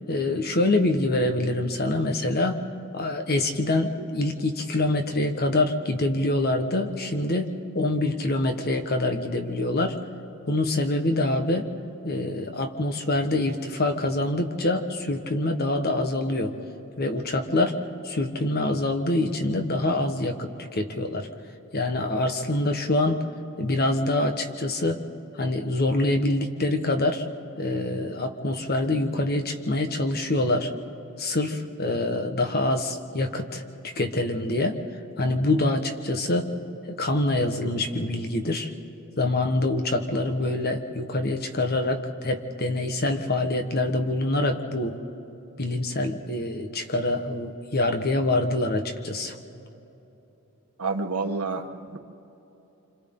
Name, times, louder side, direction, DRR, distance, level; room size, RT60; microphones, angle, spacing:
voice 1, 0.1-2.6 2.9-10.0 10.5-11.7 12.0-16.5 17.0-17.8 18.0-21.3 21.7-23.3 23.6-25.0 25.4-27.2 27.6-30.7 31.2-34.8 35.2-36.5 36.9-38.7 39.2-45.0 45.6-49.4, left 2 dB, 45° left, 6 dB, 1.4 m, -25 dB
voice 2, 50.8-52.0, right 3 dB, 85° right, 5 dB, 1.4 m, -29 dB
27.5 x 26.0 x 3.9 m, 3.0 s
head